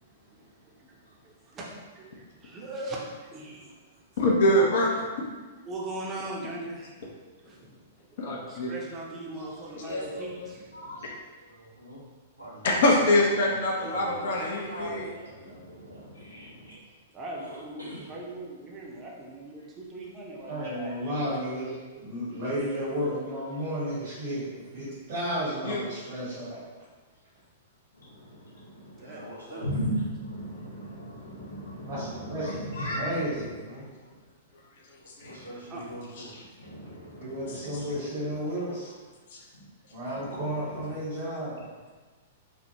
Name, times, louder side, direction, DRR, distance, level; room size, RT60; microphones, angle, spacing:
voice 1, 0.0-4.2 5.6-7.0 7.4-7.7 8.1-10.6 17.1-21.4 29.0-29.7 35.7-35.9, right 2 dB, 25° right, -3 dB, 0.6 m, -40 dB
voice 2, 4.2-5.1 8.2-8.7 12.6-15.1 25.6-25.8 35.2-35.3, left 1 dB, 55° left, -1 dB, 0.5 m, -24 dB
voice 3, 9.8-10.4 10.7-11.1 14.2-15.1 15.4-16.7 27.9-29.2 29.6-33.1 35.2-35.3 36.6-38.2 40.1-41.0, equal, 80° left, -9 dB, 0.9 m, -37 dB
voice 4, 11.3-12.0 12.4-16.1 17.3-18.1 19.6-19.7 22.3-22.4 29.0-29.7 34.0-34.1 35.0-36.3 40.7-40.8, equal, 85° right, -7 dB, 0.9 m, -45 dB
voice 5, 20.5-26.6 31.8-33.8 37.2-38.9 39.9-41.5, equal, 55° right, -10 dB, 1.0 m, -33 dB
3.3 x 2.1 x 2.7 m, 1.3 s
figure-of-eight pair, 105°, 0 cm